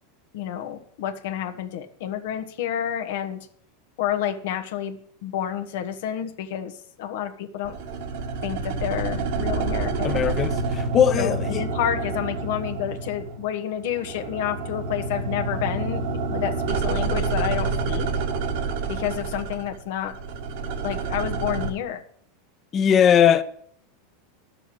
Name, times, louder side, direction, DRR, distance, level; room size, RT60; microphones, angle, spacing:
voice 1, 0.3-3.5 4.0-7.8 8.4-10.3 11.2-16.0 16.3-18.1 18.9-20.1 20.8-22.0, left 10 dB, 70° left, 1.3 m, -29 dB
sound 1, 7.6-13.6 13.8-21.7, right 3 dB, 70° right, 1.8 m, -28 dB
voice 2, 10.0-11.7 22.7-23.4, left 8 dB, 35° left, 1.0 m, -19 dB
10.5 x 6.7 x 7.7 m
hypercardioid pair, 105°, 0 cm